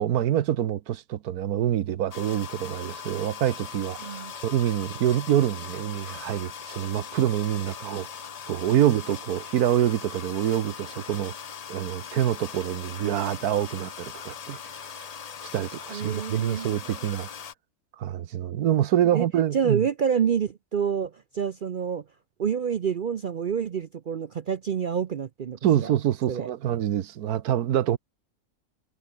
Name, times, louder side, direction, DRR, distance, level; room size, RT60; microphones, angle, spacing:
voice 1, 0.0-8.1 8.5-11.3 11.7-15.1 15.4-17.3 18.0-19.8 25.6-28.0, right 11 dB, 90° right, 1.4 m, -26 dB
sound 1, 2.1-17.5, left 7 dB, 60° left, 0.4 m, -40 dB
voice 2, 4.0-4.3 15.9-16.9 19.1-19.3 19.5-22.0 22.4-25.9 26.3-26.5, right 7 dB, 60° right, 0.5 m, -28 dB
omnidirectional pair, 1.6 m